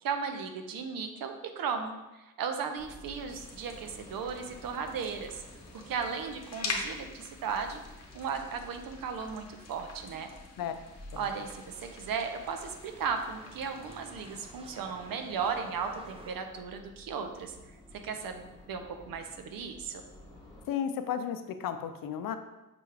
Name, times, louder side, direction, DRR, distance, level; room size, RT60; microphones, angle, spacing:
voice 1, 0.0-5.4 5.9-7.8 8.1-10.3 11.2-17.5 17.9-20.0, right 6 dB, 75° right, 6 dB, 0.6 m, -36 dB
sound 1, 2.8-20.7, left 1 dB, 10° left, 1.4 m, -53 dB
sound 2, 3.0-14.4, left 3 dB, 45° left, 0.8 m, -45 dB
sound 3, 11.1-16.3, right 2 dB, 15° right, 0.5 m, -53 dB
voice 2, 20.7-22.4, left 8 dB, 70° left, 9 dB, 0.5 m, -33 dB
5.9 x 2.3 x 3.3 m, 1.0 s
cardioid pair, 85°, 35 cm